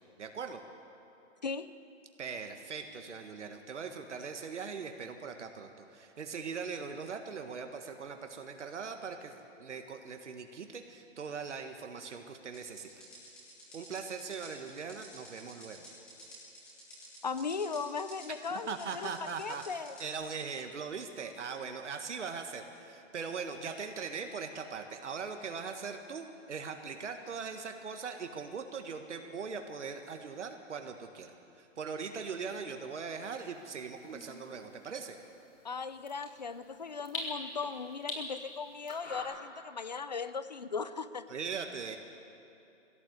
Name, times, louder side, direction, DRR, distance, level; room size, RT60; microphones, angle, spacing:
voice 1, 0.2-0.6 2.2-12.9 13.7-15.9 18.5-35.2 41.3-42.0, right 5 dB, 65° right, 5 dB, 1.7 m, -40 dB
voice 2, 1.4-1.7 17.2-20.0 35.6-41.3, left 5 dB, 35° left, 13 dB, 0.6 m, -38 dB
sound 1, 12.5-20.1, right 1 dB, ahead, 0.8 m, -52 dB
sound 2, 33.1-39.2, left 2 dB, 85° left, 5.9 m, -45 dB
19.5 x 16.5 x 8.1 m, 2.7 s
hypercardioid pair, 175°, 38 cm